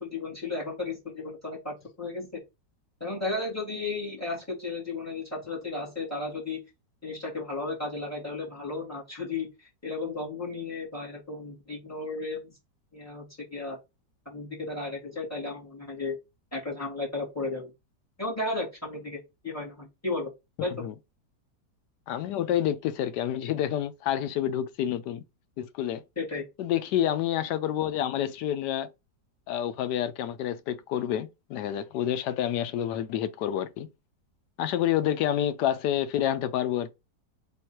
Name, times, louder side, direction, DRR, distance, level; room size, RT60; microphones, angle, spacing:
voice 1, 0.0-2.4 3.0-6.6 7.0-9.5 9.8-12.5 12.9-13.8 14.3-16.2 16.5-17.7 18.2-20.3 20.6-20.8 26.2-26.4, left 3 dB, 10° left, 2.0 m, -34 dB
voice 2, 20.6-20.9 22.1-25.2 25.6-26.0 26.6-28.9 29.5-33.9 34.6-36.9, left 11 dB, 75° left, 1.2 m, -28 dB
3.7 x 3.1 x 4.3 m
omnidirectional pair, 1.8 m